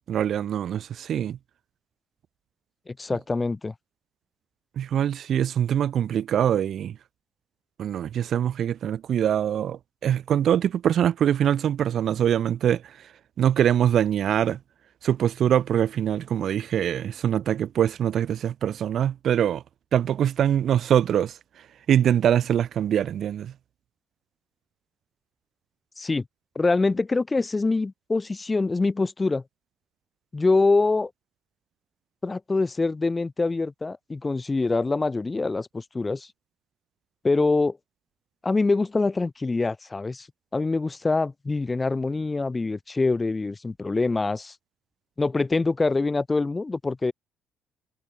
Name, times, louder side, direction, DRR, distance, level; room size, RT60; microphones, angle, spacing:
voice 1, 0.1-1.4 4.8-7.0 7.8-12.8 13.4-14.6 15.0-19.6 19.9-21.4 21.9-23.5, right 9 dB, 40° right, 1.5 m, -23 dB
voice 2, 2.9-3.7 26.0-26.2 26.6-29.4 30.3-31.1 32.2-36.3 37.2-37.8 38.4-40.3 40.5-44.6 45.2-47.1, left 3 dB, 15° left, 2.0 m, -24 dB
cardioid pair, 175°, 0 cm